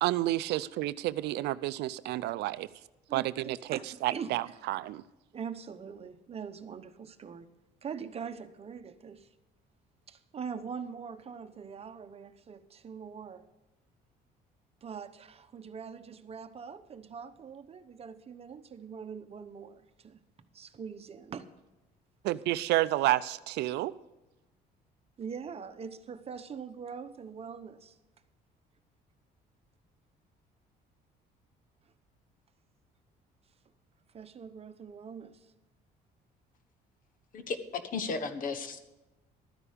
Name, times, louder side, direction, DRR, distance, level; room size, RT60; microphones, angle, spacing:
voice 1, 0.0-2.7 3.1-5.0 22.2-23.9, right 16 dB, 80° right, 16 dB, 0.5 m, -30 dB
voice 2, 3.1-4.4 5.3-7.5 7.8-9.3 10.1-13.4 14.8-20.2 20.5-21.5 25.2-28.0 34.1-35.5, right 6 dB, 35° right, 10 dB, 0.9 m, -43 dB
voice 3, 37.3-38.9, left 4 dB, 55° left, 10 dB, 1.3 m, -35 dB
13.0 x 9.9 x 5.0 m, 1.0 s
cardioid pair, 110°, 17 cm